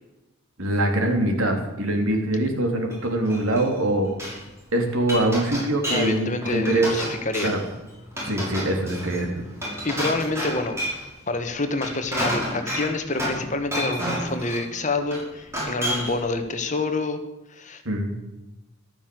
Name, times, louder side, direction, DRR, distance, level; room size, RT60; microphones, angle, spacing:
voice 1, 0.6-4.1 4.7-6.9 7.4-7.6 8.2-9.3 17.8-18.1, right 1 dB, 75° right, 3 dB, 3.4 m, -23 dB
Glass, 2.9-4.4 4.8-6.1 6.4-7.7 8.1-11.1 11.6-13.5 13.7-14.7 15.1-16.2, equal, 10° right, 5.7 m, -30 dB
voice 2, 5.9-7.6 9.8-10.8 11.3-17.2 17.5-17.8, left 2 dB, 35° left, 7 dB, 1.6 m, -27 dB
14.0 x 12.5 x 7.8 m, 1.0 s
head